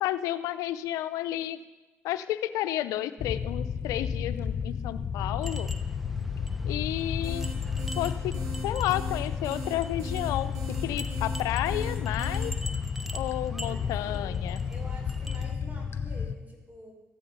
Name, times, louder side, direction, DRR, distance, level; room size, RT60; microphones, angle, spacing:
voice 1, 0.0-1.6 2.0-5.7 6.7-7.5 8.0-10.5 10.8-12.5 13.1-14.6, left 13 dB, 80° left, 12 dB, 0.6 m, -31 dB
sound 1, 3.2-16.3, left 6 dB, 45° left, 0.9 m, -32 dB
sound 2, 5.4-15.5, right 1 dB, 5° right, 0.9 m, -46 dB
sound 3, 7.0-12.5, right 3 dB, 75° right, 2.7 m, -43 dB
voice 2, 13.6-14.4 14.6-16.9, right 1 dB, 30° right, 0 dB, 5.1 m, -48 dB
14.0 x 9.8 x 5.4 m, 1.1 s
supercardioid pair, 60°, 6 cm